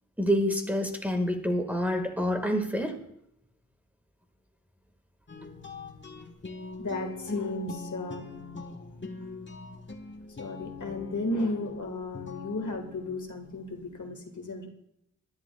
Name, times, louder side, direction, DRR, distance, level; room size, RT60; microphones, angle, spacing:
voice 1, 0.2-2.9, equal, 5° right, 3 dB, 1.6 m, -27 dB
sound 1, 5.3-14.1, left 3 dB, 40° left, 1.2 m, -42 dB
voice 2, 6.8-8.3 10.4-14.7, left 2 dB, 75° left, 3 dB, 1.6 m, -34 dB
22.5 x 11.5 x 2.3 m, 0.76 s
wide cardioid pair, 70°, 30 cm